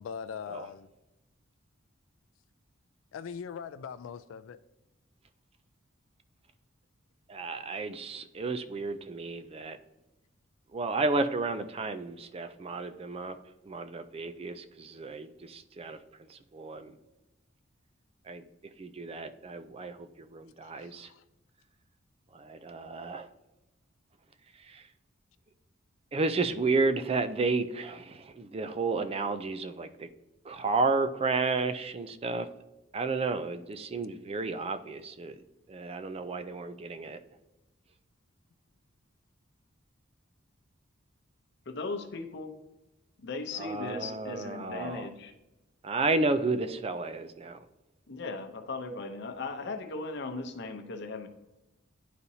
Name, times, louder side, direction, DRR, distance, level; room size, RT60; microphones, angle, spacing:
voice 1, 0.0-0.9 3.1-4.6 20.8-21.2, left 7 dB, 80° left, 12 dB, 0.3 m, -41 dB
voice 2, 7.3-9.8 10.7-13.3 13.6-16.0 16.3-17.0 18.3-18.4 18.8-21.1 22.3-23.3 24.6-24.8 26.1-30.1 30.4-32.5 32.9-35.4 35.7-37.2 43.6-45.1 45.8-47.6, right 3 dB, 30° right, 10 dB, 0.4 m, -32 dB
voice 3, 41.7-42.6 43.2-45.3 48.1-51.3, left 3 dB, 60° left, 6 dB, 0.7 m, -37 dB
11.0 x 4.1 x 2.7 m, 1.0 s
head